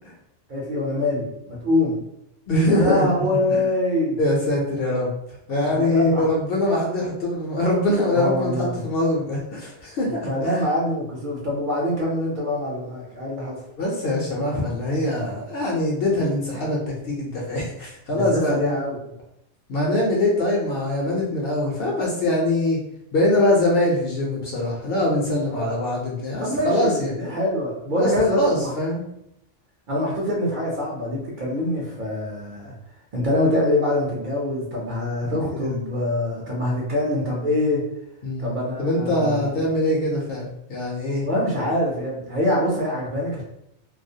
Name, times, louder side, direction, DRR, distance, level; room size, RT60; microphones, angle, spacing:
voice 1, 0.5-2.0 2.7-4.2 5.5-6.3 8.1-8.8 10.3-13.6 18.1-19.0 25.5-25.7 26.4-28.7 29.9-32.7 33.1-37.8 38.4-39.5 41.2-43.4, left 1 dB, 55° right, -4 dB, 0.6 m, -24 dB
voice 2, 2.5-3.7 4.2-5.1 5.5-10.6 13.8-18.8 19.7-22.8 23.1-27.1 28.0-29.0 35.3-35.8 38.2-38.5 38.8-41.3, left 1 dB, 60° left, -2 dB, 0.7 m, -23 dB
2.3 x 2.0 x 2.6 m, 0.79 s
omnidirectional pair, 1.3 m